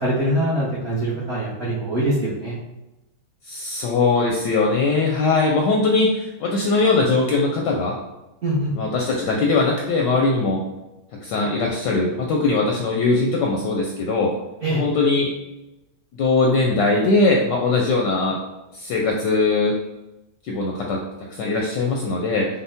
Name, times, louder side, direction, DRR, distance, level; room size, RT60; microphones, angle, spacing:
voice 1, 0.0-2.6 8.4-8.7 14.6-14.8, right 1 dB, 60° right, -7 dB, 0.7 m, -23 dB
voice 2, 3.5-7.9 8.7-10.6 11.2-14.3 14.7-15.3 16.1-18.4 18.7-19.8 20.4-21.0 21.3-22.5, left 3 dB, 75° left, 0 dB, 1.0 m, -20 dB
5.2 x 2.2 x 3.5 m, 0.97 s
omnidirectional pair, 2.3 m